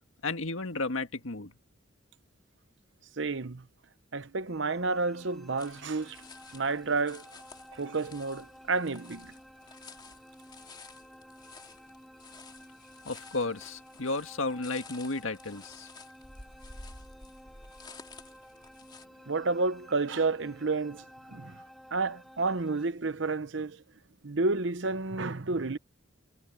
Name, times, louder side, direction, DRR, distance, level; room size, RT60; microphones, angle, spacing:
voice 1, 0.2-1.5 13.1-15.9, left 3 dB, 85° left, 1.8 m, -33 dB
voice 2, 3.2-3.6 4.1-6.2 6.5-7.3 7.7-9.3 19.3-21.5 21.9-23.8 24.2-25.8, right 3 dB, 65° right, 0.9 m, -30 dB
sound 1, 4.5-22.9, equal, ahead, 3.2 m, -53 dB
sound 2, 5.6-19.0, left 4 dB, 20° left, 3.1 m, -52 dB
head